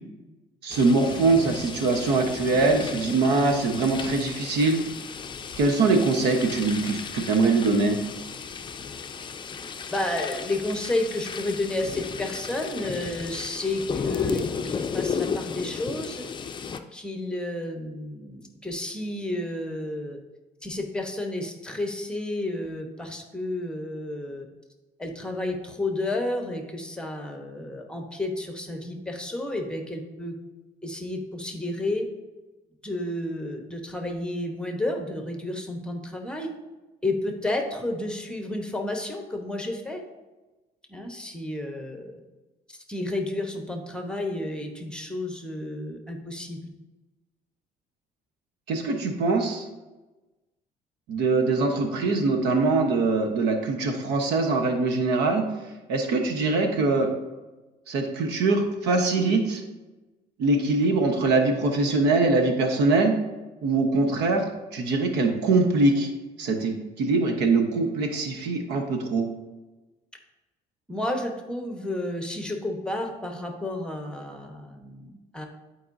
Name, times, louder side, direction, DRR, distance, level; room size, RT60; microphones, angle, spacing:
voice 1, 0.6-4.8 5.6-8.0 48.7-49.7 51.1-55.4 55.9-57.1 57.9-59.6 60.4-63.1 63.6-64.4 64.7-66.1 66.4-69.3, right 3 dB, 85° right, 5 dB, 1.1 m, -23 dB
sound 1, 0.7-16.8, left 6 dB, 30° left, 0.5 m, -34 dB
voice 2, 9.9-16.2 16.9-20.2 20.6-24.5 25.0-30.3 30.8-32.0 32.8-36.5 37.0-40.0 40.9-42.2 42.7-46.6 70.9-75.5, left 1 dB, 5° left, 3 dB, 1.1 m, -31 dB
11.5 x 4.6 x 2.7 m, 1.1 s
cardioid pair, 110°, 17 cm